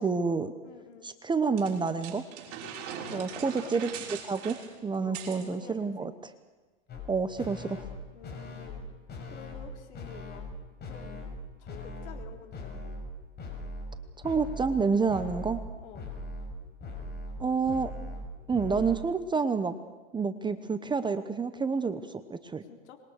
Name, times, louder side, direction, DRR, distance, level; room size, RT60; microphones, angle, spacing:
voice 1, 0.0-0.5 1.0-2.2 3.1-3.9 4.2-4.6 4.8-6.1 7.1-7.9 14.2-15.6 17.4-17.9 18.5-19.7 20.1-22.6, right 5 dB, 10° right, 11 dB, 1.0 m, -28 dB
voice 2, 0.6-1.1 3.1-3.7 5.0-5.9 8.1-8.8 9.3-10.4 10.9-11.3 11.6-12.9 15.8-16.1 22.2-22.3 22.7-23.0, left 7 dB, 65° left, 4 dB, 3.9 m, -49 dB
sound 1, 1.6-5.5, right 7 dB, 45° right, 6.1 m, -41 dB
sound 2, 6.9-7.1 7.4-8.0 8.2-8.8 9.1-9.7 9.9-10.5 10.8-11.4 11.7-12.3 12.5-13.1 13.4-14.0 14.2-14.8 15.1-19.0, left 2 dB, 25° left, 6.0 m, -40 dB
26.0 x 21.5 x 6.5 m, 1.3 s
hypercardioid pair, 120°, 37 cm